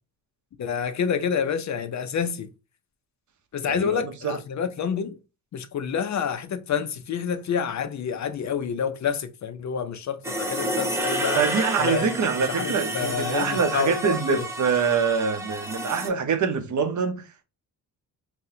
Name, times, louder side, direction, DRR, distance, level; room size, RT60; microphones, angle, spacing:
voice 1, 0.6-2.5 3.5-5.2 5.5-11.4 11.8-12.1 12.4-14.5, left 7 dB, 50° left, 0.4 m, -28 dB
voice 2, 3.7-4.4 11.3-17.4, right 6 dB, 50° right, 0.7 m, -25 dB
sound 1, 10.2-16.1, right 1 dB, 5° right, 0.9 m, -30 dB
4.0 x 2.1 x 2.7 m
cardioid pair, 85°, 38 cm